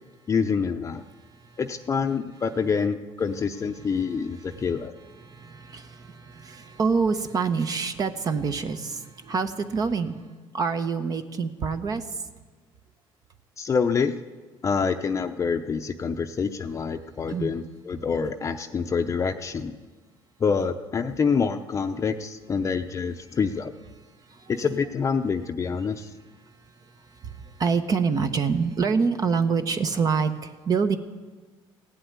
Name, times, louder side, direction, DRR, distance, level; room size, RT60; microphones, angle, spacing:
voice 1, 0.3-1.0 1.6-4.9 13.6-14.1 14.6-19.8 20.4-23.7 24.5-26.1, left 5 dB, 30° left, 6 dB, 0.6 m, -26 dB
voice 2, 1.1-1.6 3.8-4.7 5.2-10.2 10.5-12.2 17.3-17.5 23.3-23.4 24.2-24.5 26.4-31.0, right 5 dB, 40° right, 9 dB, 1.0 m, -27 dB
16.0 x 7.9 x 9.4 m, 1.3 s
cardioid pair, 100°, 10 cm